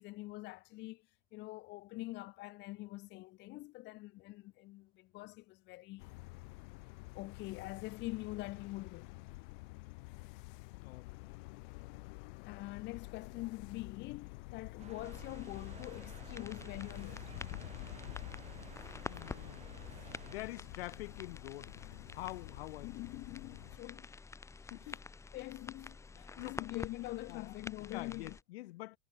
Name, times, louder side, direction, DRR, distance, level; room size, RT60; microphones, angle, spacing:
voice 1, 0.0-6.2 7.1-9.1 12.4-17.3 22.8-24.1 24.9-25.0 25.3-28.4, left 19 dB, 35° left, 1.5 m, -45 dB
sound 1, 6.0-23.8, left 25 dB, 50° left, 2.1 m, -49 dB
voice 2, 10.7-11.2 19.0-19.6 20.3-22.9 24.7-25.0 26.2-26.7 27.3-27.5 27.9-29.0, left 18 dB, 65° left, 0.9 m, -46 dB
sound 2, 14.8-20.4, right 9 dB, 20° right, 2.5 m, -55 dB
sound 3, 15.0-28.4, left 4 dB, 10° left, 2.0 m, -49 dB
supercardioid pair, 160°, 32 cm